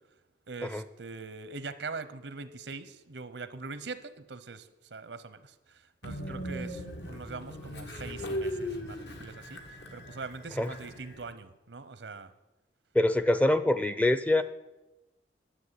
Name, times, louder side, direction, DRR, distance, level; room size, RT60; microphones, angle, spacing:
voice 1, 0.5-12.3, right 4 dB, 90° right, 13 dB, 0.9 m, -42 dB
Train, 6.0-11.3, equal, 80° left, 1.9 m, -38 dB
voice 2, 12.9-14.4, left 1 dB, 10° left, 12 dB, 0.4 m, -24 dB
11.5 x 7.6 x 8.2 m, 1.0 s
head